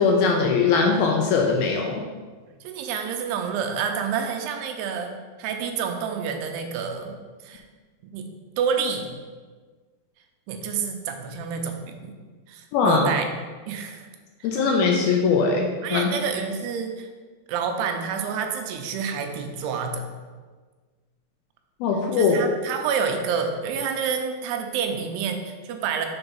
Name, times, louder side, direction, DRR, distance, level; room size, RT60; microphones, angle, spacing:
voice 1, 0.0-2.0 12.7-13.0 14.4-16.1 21.8-22.4, left 5 dB, 85° left, 1 dB, 2.2 m, -21 dB
voice 2, 2.6-7.2 7.4-7.6 8.0-8.3 8.6-9.1 10.5-12.2 12.5-13.3 13.7-14.1 14.4-14.6 15.8-17.1 17.5-20.0 22.1-26.1, right 6 dB, 85° right, 4 dB, 2.8 m, -28 dB
6.9 x 4.0 x 5.4 m, 1.4 s
omnidirectional pair, 4.7 m